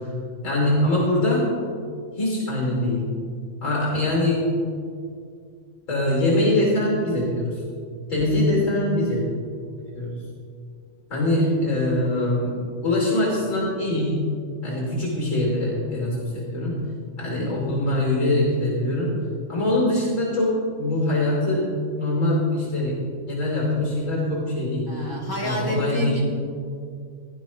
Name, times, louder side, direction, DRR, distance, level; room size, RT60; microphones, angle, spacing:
voice 1, 0.4-1.5 2.2-3.0 3.6-4.4 5.9-7.6 8.1-9.3 9.9-10.2 11.1-12.5 12.8-14.2 14.6-16.8 17.2-19.1 19.5-21.7 22.0-23.0 23.3-24.9 25.4-26.2, left 1 dB, 65° left, -4 dB, 3.5 m, -23 dB
voice 2, 11.3-11.9 24.9-26.2, left 1 dB, 15° left, -6 dB, 3.5 m, -30 dB
18.0 x 10.5 x 3.1 m, 2.2 s
omnidirectional pair, 1.4 m